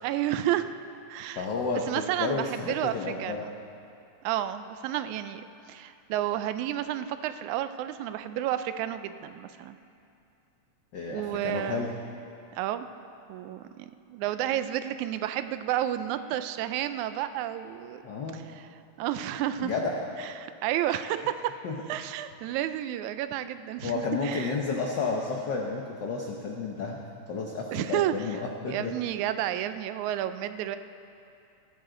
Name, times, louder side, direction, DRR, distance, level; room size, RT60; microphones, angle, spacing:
voice 1, 0.0-0.7 1.1-1.5 1.9-2.9 3.2-3.5 4.2-5.4 5.7-9.8 11.1-11.9 12.6-12.9 13.3-18.0 18.3-18.6 19.0-19.7 20.2-21.5 21.9-24.5 27.7-28.1 28.7-30.8, right 12 dB, 90° right, 11 dB, 2.0 m, -31 dB
voice 2, 1.4-3.4 10.9-11.9 18.0-18.4 19.6-19.9 21.6-21.7 23.8-27.0 27.3-28.9, left 4 dB, 80° left, 0 dB, 0.9 m, -31 dB
17.5 x 14.0 x 3.8 m, 2.6 s
omnidirectional pair, 3.3 m